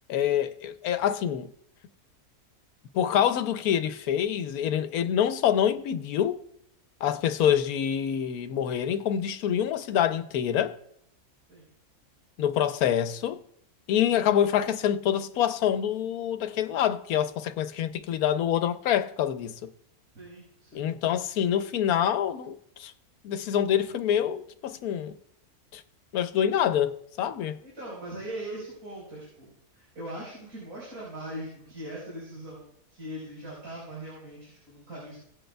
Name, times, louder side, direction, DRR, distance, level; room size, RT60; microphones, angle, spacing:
voice 1, 0.1-1.5 2.9-6.4 7.0-10.8 12.4-13.4 13.9-19.7 20.7-22.9 23.2-25.1 25.7-25.8 26.1-27.5, left 10 dB, 85° left, 1.1 m, -26 dB
voice 2, 20.1-21.3 27.6-35.2, right 1 dB, 85° right, 4.8 m, -41 dB
18.0 x 7.8 x 2.3 m
omnidirectional pair, 1.5 m